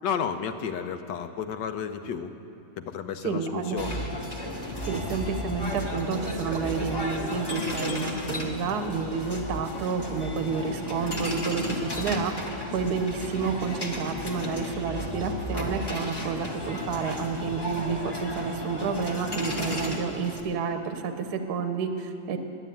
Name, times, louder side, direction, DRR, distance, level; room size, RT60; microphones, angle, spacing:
voice 1, 0.0-2.3 2.8-4.0, left 7 dB, 75° left, 8 dB, 1.2 m, -32 dB
voice 2, 3.2-3.9 4.9-12.3 12.7-22.4, right 5 dB, 65° right, 7 dB, 1.2 m, -30 dB
sound 1, 3.8-20.4, left 1 dB, 15° left, 0.9 m, -33 dB
11.0 x 9.3 x 9.0 m, 2.7 s
omnidirectional pair, 2.0 m